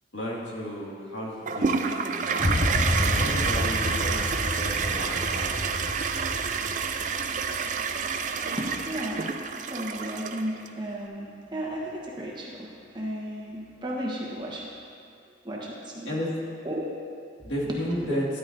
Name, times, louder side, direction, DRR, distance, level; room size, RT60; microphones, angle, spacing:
voice 1, 0.1-2.6 3.0-5.7 16.1-16.4 17.4-18.3, equal, 75° left, -5 dB, 2.1 m, -33 dB
Toilet flush, 1.5-10.7, right 5 dB, 40° right, 0.4 m, -28 dB
sound 1, 2.4-8.6, left 1 dB, 20° left, 0.5 m, -30 dB
voice 2, 8.6-9.3 9.7-14.7 15.4-16.1 16.6-16.9 18.0-18.2, right 1 dB, 25° right, -3 dB, 1.2 m, -34 dB
12.5 x 10.0 x 2.7 m, 2.3 s
head